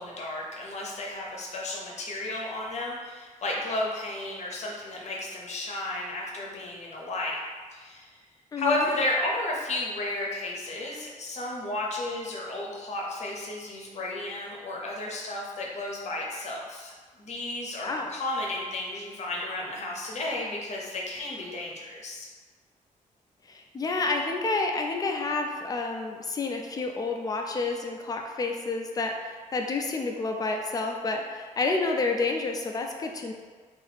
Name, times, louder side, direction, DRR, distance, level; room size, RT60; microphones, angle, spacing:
voice 1, 0.0-7.4 7.7-8.1 8.6-22.3, left 2 dB, 55° left, -2 dB, 0.7 m, -33 dB
voice 2, 8.5-8.9 17.8-18.1 23.5-33.3, left 3 dB, 25° left, 3 dB, 0.3 m, -29 dB
2.8 x 2.5 x 4.1 m, 1.5 s
wide cardioid pair, 155°, 14 cm